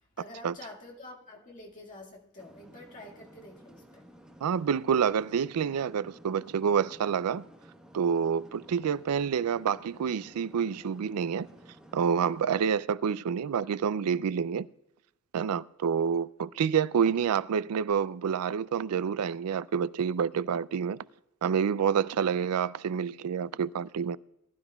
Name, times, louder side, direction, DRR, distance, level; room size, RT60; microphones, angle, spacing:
voice 1, 0.2-4.1, left 2 dB, 35° left, 1.9 m, -48 dB
sound 1, 2.4-12.7, equal, 5° right, 1.2 m, -54 dB
voice 2, 4.4-7.5 7.9-11.5 11.9-14.7 15.3-21.0 21.4-24.2, right 7 dB, 85° right, 0.4 m, -28 dB
19.5 x 12.0 x 2.3 m
head